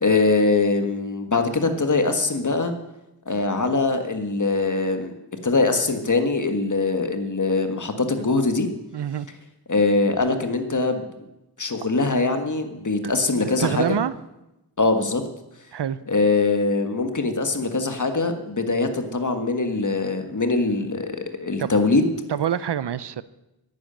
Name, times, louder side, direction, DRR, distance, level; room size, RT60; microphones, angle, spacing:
voice 1, 0.0-2.7 3.3-5.1 5.4-8.7 9.7-11.1 11.6-14.0 14.8-15.2 16.1-22.0, left 3 dB, 50° left, 7 dB, 1.6 m, -22 dB
voice 2, 8.9-9.3 13.0-13.1 13.6-14.1 15.7-16.0 21.6-21.7 22.3-23.2, right 9 dB, 85° right, 16 dB, 0.7 m, -25 dB
11.5 x 9.3 x 9.1 m, 0.94 s
wide cardioid pair, 85°, 40 cm